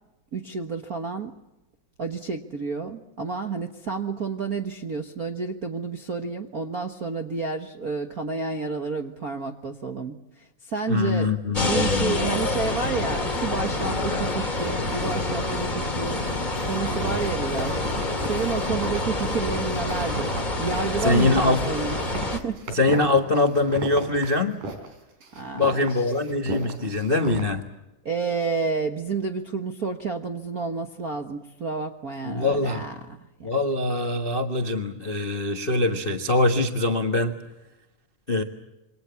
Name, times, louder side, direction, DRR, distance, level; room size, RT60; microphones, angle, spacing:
voice 1, 0.3-1.3 2.0-22.6 25.3-26.1 28.0-33.5, right 4 dB, 55° right, 5 dB, 1.0 m, -30 dB
voice 2, 10.9-12.2 21.0-21.6 22.7-24.6 25.5-27.6 32.2-32.9 33.4-37.4 38.3-38.4, left 2 dB, 45° left, 5 dB, 0.7 m, -23 dB
sound 1, 11.5-22.4, left 2 dB, 15° left, 2.3 m, -27 dB
sound 2, 14.5-15.7 15.9-24.9 25.2-27.4, right 3 dB, 90° right, 5.3 m, -36 dB
27.5 x 24.5 x 7.0 m, 0.96 s
omnidirectional pair, 3.7 m